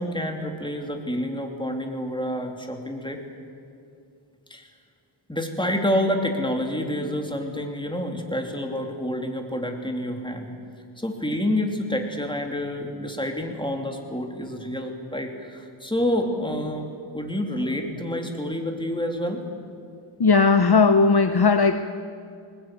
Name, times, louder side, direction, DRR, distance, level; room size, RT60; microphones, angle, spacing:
voice 1, 0.0-3.2 4.5-4.7 5.3-10.5 11.0-16.9 17.1-19.4, left 1 dB, 10° left, 3 dB, 3.1 m, -28 dB
voice 2, 20.2-21.9, left 4 dB, 50° left, 10 dB, 0.8 m, -17 dB
20.5 x 20.0 x 9.2 m, 2.4 s
wide cardioid pair, 65°, 49 cm